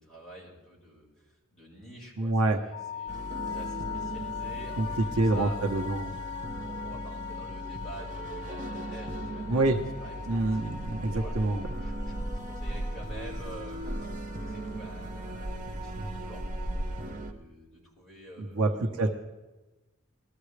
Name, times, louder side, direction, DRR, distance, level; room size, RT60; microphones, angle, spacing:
voice 1, 0.0-5.9 6.7-10.2 10.5-10.8 11.1-11.4 11.8-12.1 12.5-16.5 16.8-19.1, right 1 dB, ahead, -6 dB, 4.9 m, -48 dB
voice 2, 2.2-2.6 4.8-4.9 5.2-6.1 9.5-9.8 10.3-11.7 16.0-16.1 18.4-19.1, right 2 dB, 90° right, 3 dB, 1.1 m, -26 dB
sound 1, 2.7-16.7, left 9 dB, 65° left, 0.6 m, -42 dB
sound 2, 3.1-17.3, right 1 dB, 35° right, 1.0 m, -39 dB
sound 3, 10.8-16.8, right 1 dB, 40° left, 2.4 m, -38 dB
21.0 x 13.0 x 3.3 m, 1.1 s
head